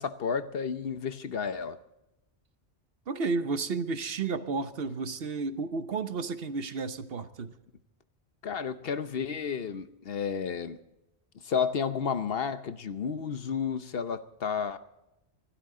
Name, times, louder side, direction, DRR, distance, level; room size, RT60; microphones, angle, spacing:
voice 1, 0.0-1.8 8.4-10.8 11.4-14.8, left 6 dB, 65° left, 11 dB, 1.1 m, -31 dB
voice 2, 3.1-7.6, right 4 dB, 65° right, 11 dB, 1.1 m, -32 dB
26.5 x 12.5 x 3.8 m, 0.90 s
omnidirectional pair, 1.1 m